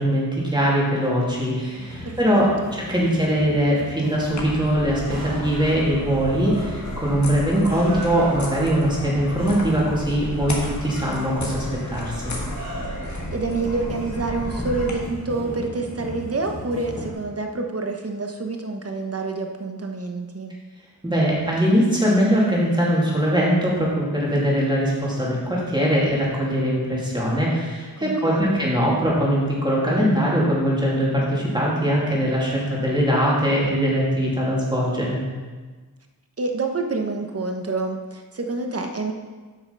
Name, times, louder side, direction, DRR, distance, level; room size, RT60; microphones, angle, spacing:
voice 1, 0.0-12.2 21.0-35.2, equal, 10° right, -5 dB, 2.9 m, -21 dB
sound 1, 1.8-17.1, left 1 dB, 20° left, 2.8 m, -37 dB
voice 2, 2.0-2.7 13.3-20.5 28.0-28.7 36.4-39.1, right 3 dB, 40° right, 4 dB, 1.1 m, -28 dB
sound 2, 4.3-14.9, left 1 dB, 50° left, 1.9 m, -33 dB
sound 3, 4.8-6.8 7.7-10.1 11.0-13.5 14.0-14.1, right 2 dB, 70° right, 2.9 m, -40 dB
8.6 x 5.8 x 5.4 m, 1.4 s
wide cardioid pair, 65°, 36 cm